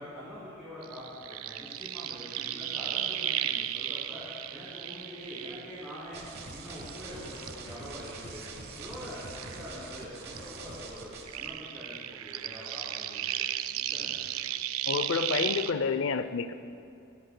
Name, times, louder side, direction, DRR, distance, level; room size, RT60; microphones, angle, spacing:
voice 1, 0.0-4.2 4.5-6.2 6.5-8.4 8.7-13.5 13.7-14.2, equal, 5° right, -13 dB, 3.3 m, -44 dB
sound 1, 0.8-6.3 6.7-10.0 10.3-15.7, right 12 dB, 75° right, 0.4 m, -35 dB
sound 2, 6.1-11.5, right 3 dB, 45° right, 1.1 m, -44 dB
voice 2, 14.9-16.5, left 5 dB, 60° left, 11 dB, 0.5 m, -29 dB
19.0 x 14.0 x 2.2 m, 2.6 s
head